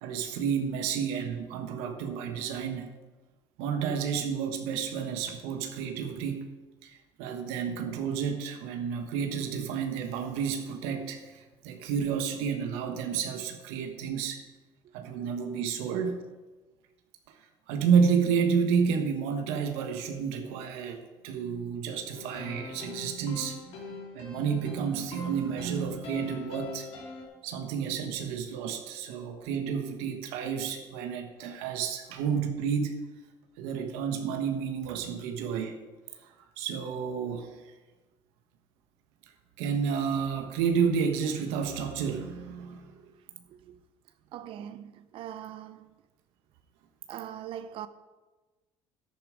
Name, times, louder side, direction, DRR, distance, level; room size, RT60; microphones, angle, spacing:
voice 1, 0.0-2.9 3.6-6.6 6.8-14.4 14.9-16.2 17.3-17.4 17.7-26.9 27.4-33.0 33.6-35.8 36.2-37.5 39.6-43.0, right 6 dB, 85° right, 1.4 m, -30 dB
sound 1, 22.1-27.2, left 3 dB, 65° left, 3.8 m, -43 dB
voice 2, 44.3-45.9 47.1-47.9, right 10 dB, 60° right, 0.7 m, -41 dB
10.0 x 10.0 x 5.1 m
supercardioid pair, 95°, 10 cm